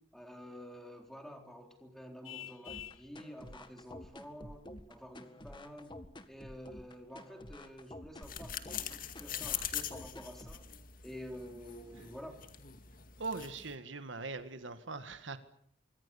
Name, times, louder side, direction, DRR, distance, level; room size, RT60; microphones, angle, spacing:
voice 1, 0.1-6.0 6.3-10.7 11.0-12.4, equal, ahead, 4 dB, 3.9 m, -49 dB
Vehicle horn car horn honking, 2.2-3.1, left 12 dB, 85° left, 0.9 m, -46 dB
sound 1, 2.7-10.6, left 1 dB, 25° left, 1.8 m, -50 dB
sound 2, 8.2-13.8, left 10 dB, 45° left, 2.2 m, -42 dB
voice 2, 13.2-15.4, right 3 dB, 75° right, 10 dB, 1.8 m, -41 dB
25.5 x 24.5 x 7.1 m, 0.68 s
head